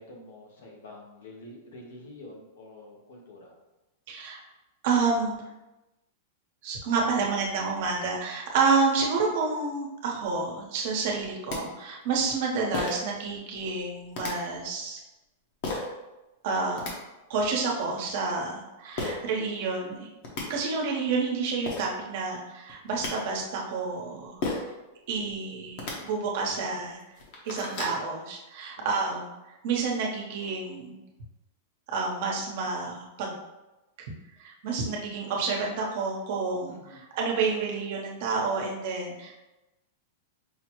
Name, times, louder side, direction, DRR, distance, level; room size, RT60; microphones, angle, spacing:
voice 1, 0.0-3.5 19.3-19.5 25.9-26.1 26.6-26.8 28.8-29.0 36.7-37.0, left 2 dB, 85° left, -1 dB, 1.1 m, -47 dB
voice 2, 4.1-4.4 4.8-5.4 6.6-15.0 16.4-16.8 17.3-20.1 20.5-24.4 25.1-27.0 27.4-29.3 29.6-31.0 31.9-33.3 34.0-34.1 34.4-39.4, right 4 dB, 60° right, -1 dB, 1.0 m, -29 dB
sound 1, 11.2-11.3 11.5-11.6 12.7-13.1 14.1-14.3 15.6-15.9 16.6-16.9 19.0-19.2 19.9-20.0 20.2-20.4 21.3-21.4 21.7-21.9 22.7-23.1 24.4-24.7 25.7-25.9 26.6-26.7 27.1-28.0, left 3 dB, 50° left, 1.0 m, -32 dB
5.4 x 2.1 x 3.0 m, 1.0 s
supercardioid pair, 145°, 0 cm